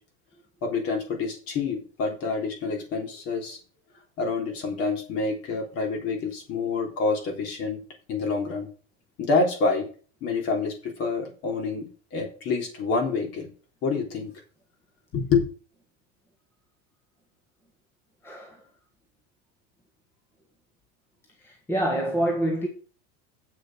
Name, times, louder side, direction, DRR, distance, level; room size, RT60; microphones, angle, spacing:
voice 1, 0.6-3.6 4.2-7.8 8.1-8.7 9.2-9.9 10.2-13.5 13.8-14.3 15.1-15.4, left 4 dB, 40° left, 3.5 m, -27 dB
voice 2, 18.2-18.6 21.4-22.7, right 1 dB, 5° left, 1.3 m, -27 dB
8.4 x 6.6 x 6.2 m
cardioid pair, 180°, 36 cm